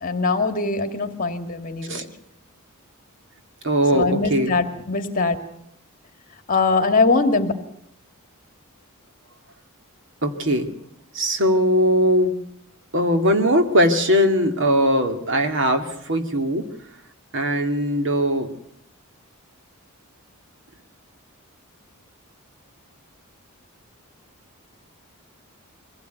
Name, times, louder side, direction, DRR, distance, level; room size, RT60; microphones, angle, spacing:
voice 1, 0.0-2.1 3.9-5.4 6.5-7.5, left 3 dB, 40° left, 7 dB, 2.4 m, -21 dB
voice 2, 3.6-4.5 10.2-10.7 11.1-12.4 12.9-16.6 17.3-18.5, equal, 55° right, 6 dB, 2.4 m, -20 dB
24.0 x 16.5 x 9.3 m, 0.72 s
head